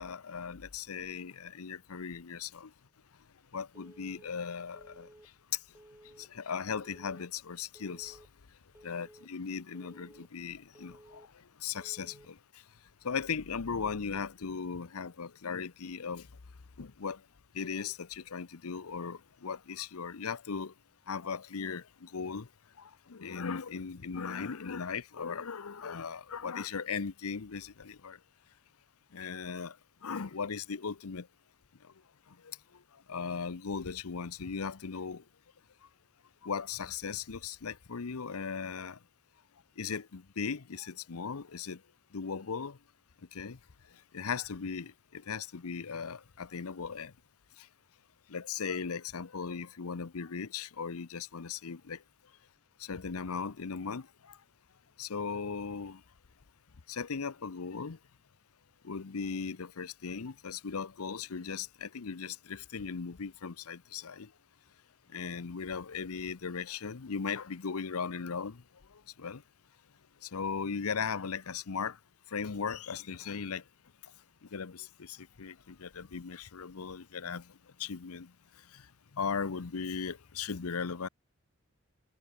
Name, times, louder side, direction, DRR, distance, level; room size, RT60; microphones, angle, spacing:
voice 1, 0.0-2.7 3.5-5.1 6.2-8.2 8.8-11.2 11.6-12.3 13.0-16.3 16.8-17.2 17.5-20.7 21.1-22.5 23.1-28.2 29.1-29.7 30.0-31.3 33.1-35.2 36.4-39.0 39.8-41.8 42.1-42.8 43.3-43.6 44.1-47.1 48.3-52.0 52.8-54.1 55.0-56.0 56.9-58.0 58.8-64.3 65.1-68.6 69.2-69.4 70.3-72.0 72.3-73.6 74.5-77.4 77.8-78.3 79.2-81.1, left 5 dB, 85° left, 0.8 m, -37 dB
Telephone, 3.7-4.3 4.7-5.3 5.7-6.3 6.7-7.3 7.7-8.3 8.7-9.3 9.7-10.3 10.7-11.3 11.7-12.3, right 1 dB, 10° right, 0.5 m, -56 dB
head